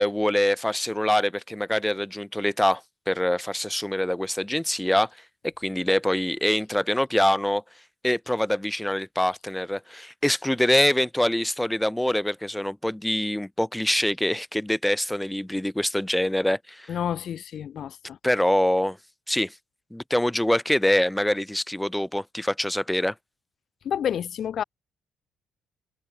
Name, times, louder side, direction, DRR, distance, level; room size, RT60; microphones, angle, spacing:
voice 1, 0.0-5.1 5.4-7.6 8.0-17.0 18.2-19.0 19.3-19.5 19.9-23.1, left 1 dB, 5° left, 2.2 m, -24 dB
voice 2, 16.9-18.2 23.8-24.6, left 9 dB, 65° left, 1.3 m, -29 dB
cardioid pair, 90°, 0 cm